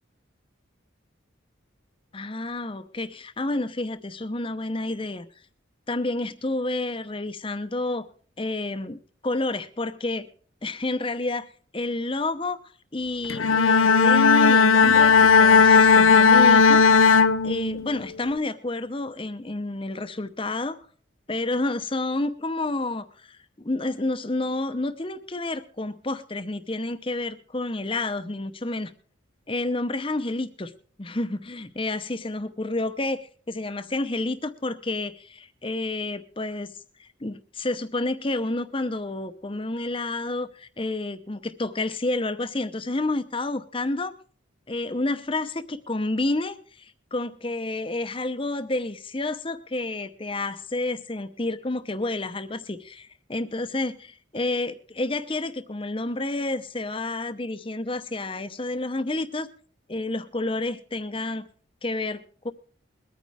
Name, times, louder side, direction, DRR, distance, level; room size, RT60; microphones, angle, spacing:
voice 1, 2.1-5.3 5.9-8.1 8.4-10.3 10.6-12.6 12.9-16.8 17.4-20.8 21.3-28.9 29.5-30.7 31.0-36.7 37.0-44.1 44.7-59.5 59.9-61.5 61.8-62.5, left 2 dB, 25° left, 11 dB, 0.8 m, -29 dB
Bowed string instrument, 13.3-18.0, left 5 dB, 85° left, 0.6 m, -16 dB
22.5 x 9.4 x 3.5 m, 0.43 s
head